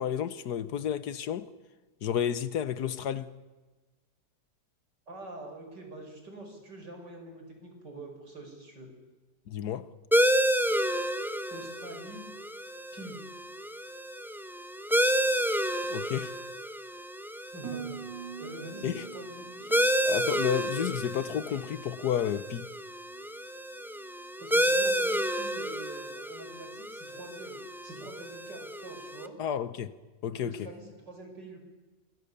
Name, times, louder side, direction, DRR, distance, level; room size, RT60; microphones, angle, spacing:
voice 1, 0.0-1.5 2.0-3.3 9.5-9.9 15.9-16.4 18.8-19.0 20.1-22.7 29.4-30.0 30.2-30.7, left 9 dB, 70° left, 1.5 m, -31 dB
voice 2, 5.1-8.9 11.5-12.2 12.9-13.2 17.5-18.0 18.4-19.8 24.4-27.6 27.8-29.3 30.3-31.6, right 2 dB, 85° right, 6.2 m, -45 dB
sound 1, 10.1-29.3, equal, ahead, 0.8 m, -30 dB
Harp, 17.6-21.7 22.0-22.6 23.1-23.4, right 9 dB, 70° right, 3.3 m, -46 dB
26.0 x 23.0 x 6.9 m
omnidirectional pair, 1.8 m